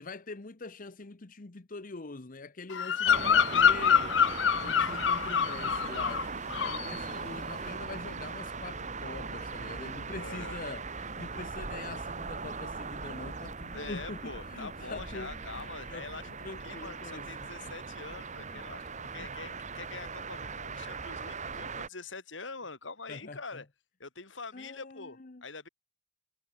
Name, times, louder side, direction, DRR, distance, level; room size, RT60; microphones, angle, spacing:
voice 1, 0.0-4.2 4.6-17.6 18.5-18.9 19.2-19.6 23.1-23.6 24.5-25.4, left 3 dB, 45° left, 1.0 m, -44 dB
Bird vocalization bird call bird song, 2.7-6.3 6.5-6.9, left 8 dB, 70° left, 0.6 m, -26 dB
sound 1, 3.1-21.9, right 4 dB, 40° right, 2.0 m, -39 dB
voice 2, 10.2-10.6 13.7-23.7 24.0-25.7, left 4 dB, 85° left, 4.6 m, -44 dB
head